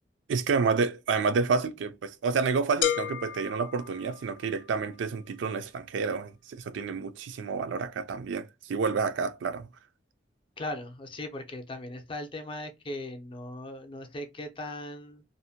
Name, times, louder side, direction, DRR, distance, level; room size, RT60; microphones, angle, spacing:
voice 1, 0.3-9.7, right 5 dB, 80° right, 0.4 m, -29 dB
sound 1, 2.8-4.7, left 10 dB, 85° left, 0.3 m, -32 dB
voice 2, 10.6-15.2, left 1 dB, 30° left, 0.5 m, -38 dB
2.5 x 2.1 x 2.7 m
head